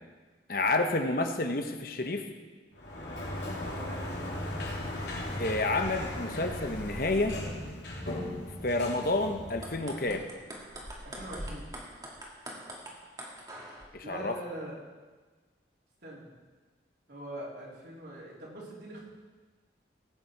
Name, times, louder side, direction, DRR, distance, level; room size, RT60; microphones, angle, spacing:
voice 1, 0.5-2.3 5.4-7.4 8.6-10.2 13.9-14.3, left 2 dB, 50° left, 6 dB, 1.0 m, -29 dB
Sliding door, 2.7-9.9, left 1 dB, 75° left, 3.2 m, -37 dB
voice 2, 3.6-4.2 11.0-11.7 14.0-14.8 16.0-16.3 17.1-19.1, right 1 dB, 65° right, -5 dB, 3.7 m, -42 dB
sound 1, 9.5-13.9, right 1 dB, 20° right, 1.8 m, -43 dB
18.0 x 8.6 x 4.6 m, 1.3 s
head